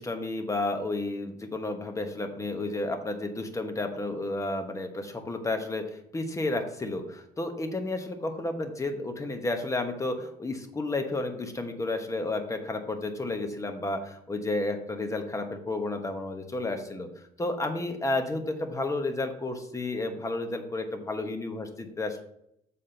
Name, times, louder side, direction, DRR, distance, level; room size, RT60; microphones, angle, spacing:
voice 1, 0.0-17.1 17.4-22.2, left 2 dB, 20° left, 6 dB, 1.1 m, -32 dB
7.4 x 4.3 x 5.1 m, 0.75 s
cardioid pair, 110°, 17 cm